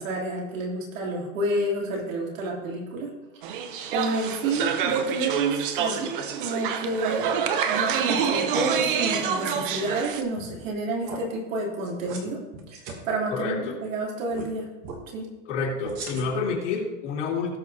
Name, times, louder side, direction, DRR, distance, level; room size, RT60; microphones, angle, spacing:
voice 1, 0.0-3.1 3.9-6.1 6.4-12.4 12.7-12.8 13.0-14.7 15.1-15.3, right 2 dB, 80° right, -2 dB, 3.2 m, -29 dB
sound 1, 3.4-10.2, right 7 dB, 40° right, 0.8 m, -27 dB
sound 2, 10.4-10.7 11.0-11.2 11.8-12.2 12.5-13.0 14.3-14.5 14.8-15.0 15.8-16.5, right 4 dB, 25° right, 1.0 m, -38 dB
voice 2, 13.3-13.8 15.5-17.6, left 4 dB, 60° left, -2 dB, 2.8 m, -28 dB
18.0 x 6.3 x 2.8 m, 1.1 s
supercardioid pair, 180°, 39 cm